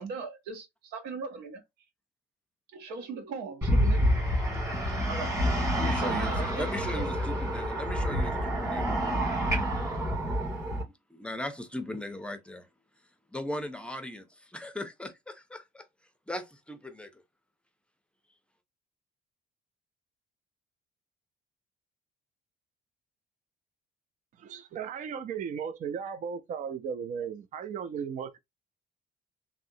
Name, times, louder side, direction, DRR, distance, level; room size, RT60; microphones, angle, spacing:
voice 1, 0.0-1.6 2.7-4.1 5.1-5.3 6.0-6.7 7.0-7.1 7.9-8.0, right 4 dB, 90° right, 0.8 m, -38 dB
sound 1, 3.6-10.8, equal, 20° right, 2.0 m, -28 dB
voice 2, 5.7-9.0 11.1-12.7 13.3-15.8 16.3-17.2, left 1 dB, 5° left, 0.6 m, -38 dB
voice 3, 24.4-28.4, right 7 dB, 50° right, 0.5 m, -36 dB
3.5 x 2.1 x 2.7 m
cardioid pair, 110°, 17 cm